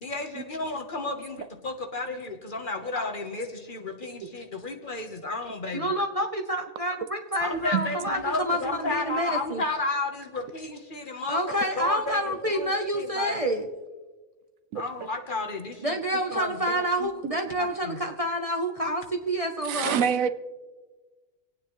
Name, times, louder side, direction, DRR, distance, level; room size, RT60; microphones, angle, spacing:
voice 1, 0.0-5.9 7.4-13.5 14.7-16.0 16.3-17.1 17.6-18.0, left 3 dB, 40° left, 4 dB, 1.2 m, -33 dB
voice 2, 5.7-9.6 11.3-13.7 15.8-20.0, equal, 30° right, 3 dB, 0.7 m, -28 dB
voice 3, 19.6-20.3, right 7 dB, 75° right, 11 dB, 1.0 m, -25 dB
27.0 x 9.2 x 3.1 m, 1.3 s
omnidirectional pair, 1.4 m